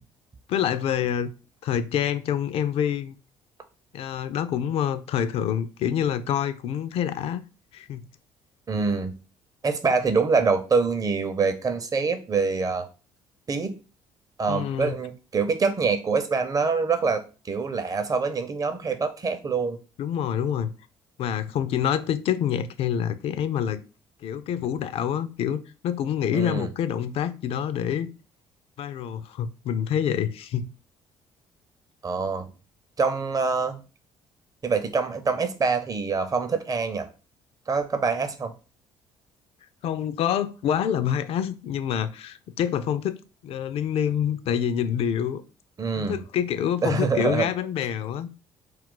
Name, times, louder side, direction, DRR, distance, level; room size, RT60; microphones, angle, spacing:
voice 1, 0.5-1.3 1.6-3.1 3.9-7.4 7.7-8.1 14.5-15.0 20.0-20.7 21.2-23.8 24.2-28.1 28.8-30.7 39.8-43.2 43.4-45.4 46.0-48.4, left 9 dB, 60° left, 0.4 m, -27 dB
voice 2, 8.7-9.1 9.6-12.9 13.5-13.7 14.4-19.8 26.3-26.7 32.0-32.5 33.0-33.8 34.6-37.1 37.7-38.5 45.8-46.2 46.8-47.5, right 4 dB, 30° right, 0.6 m, -25 dB
2.4 x 2.3 x 3.7 m
hypercardioid pair, 60°, 11 cm